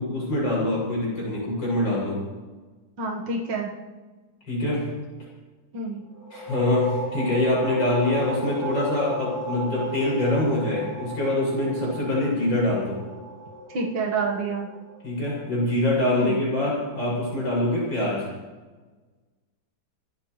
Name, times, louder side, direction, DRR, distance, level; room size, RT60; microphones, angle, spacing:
voice 1, 0.0-2.2 4.5-4.9 6.3-13.0 15.0-18.3, left 1 dB, 90° left, -6 dB, 7.7 m, -24 dB
voice 2, 3.0-3.7 5.7-6.0 13.7-14.7 16.2-16.4, right 3 dB, 75° right, -1 dB, 2.3 m, -28 dB
sound 1, 6.1-15.6, equal, 20° left, 3.1 m, -34 dB
29.0 x 13.5 x 3.3 m, 1.3 s
omnidirectional pair, 2.0 m